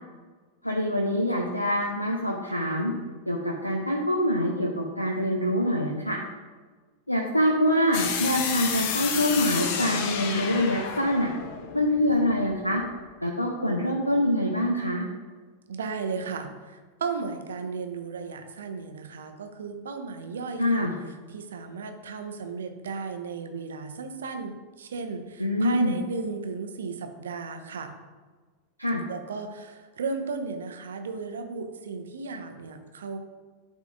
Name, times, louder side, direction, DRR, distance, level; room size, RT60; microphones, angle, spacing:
voice 1, 0.6-2.9 3.3-6.2 7.1-11.3 11.7-12.8 13.2-15.0 20.6-20.9 25.4-26.0 28.8-29.0, left 1 dB, 85° left, 0 dB, 0.6 m, -25 dB
sound 1, 7.9-12.8, left 7 dB, 45° left, 0.6 m, -31 dB
voice 2, 15.7-20.9 21.3-28.0 29.1-33.2, right 4 dB, 65° right, 6 dB, 0.7 m, -35 dB
11.0 x 3.7 x 2.6 m, 1.4 s
figure-of-eight pair, 90°, 0 cm